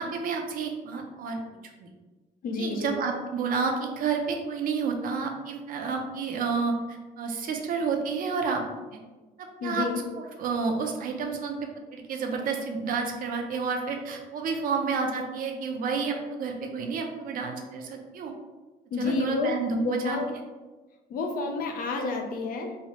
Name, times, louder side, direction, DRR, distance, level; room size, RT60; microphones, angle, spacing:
voice 1, 0.0-1.4 1.8-1.9 2.6-8.6 9.4-9.9 10.2-18.3 19.0-20.2, right 5 dB, 55° right, 3 dB, 0.5 m, -30 dB
voice 2, 2.4-3.0 9.6-10.0 18.9-19.5 19.8-20.3 21.1-22.8, left 3 dB, 60° left, 4 dB, 0.5 m, -29 dB
3.1 x 2.3 x 2.8 m, 1.2 s
cardioid pair, 110°, 17 cm